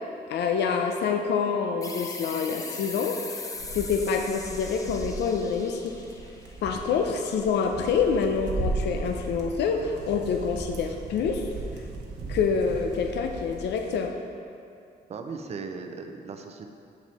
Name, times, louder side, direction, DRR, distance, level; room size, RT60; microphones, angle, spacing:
voice 1, 0.3-3.4 3.7-5.9 6.6-11.5 12.3-14.1, left 6 dB, 80° left, 4 dB, 0.6 m, -26 dB
sound 1, 1.8-7.1, left 3 dB, 20° left, 0.5 m, -40 dB
sound 2, 3.6-14.1, right 3 dB, 85° right, 1.0 m, -37 dB
voice 2, 15.1-16.7, right 4 dB, 40° right, 5 dB, 0.5 m, -37 dB
7.2 x 6.2 x 4.2 m, 2.5 s
cardioid pair, 160°, 18 cm